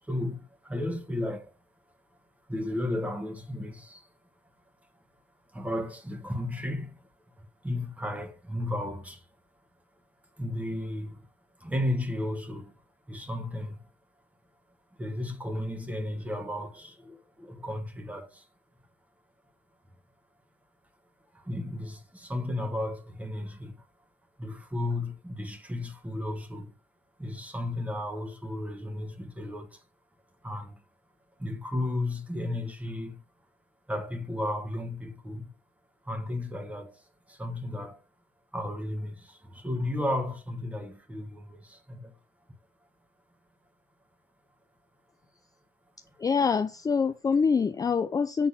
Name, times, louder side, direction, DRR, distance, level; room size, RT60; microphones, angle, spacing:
voice 1, 0.0-1.5 2.5-4.1 5.5-7.1 7.4-9.3 10.4-11.3 11.6-12.7 13.1-13.9 15.0-18.5 21.3-23.8 24.4-26.7 27.2-29.8 30.4-30.8 31.4-33.2 33.9-35.5 36.0-38.0 38.5-42.2, left 1 dB, 10° right, 1.5 m, -34 dB
voice 2, 46.2-48.5, left 5 dB, 20° left, 0.4 m, -25 dB
8.3 x 3.9 x 5.7 m
cardioid pair, 110°, 17 cm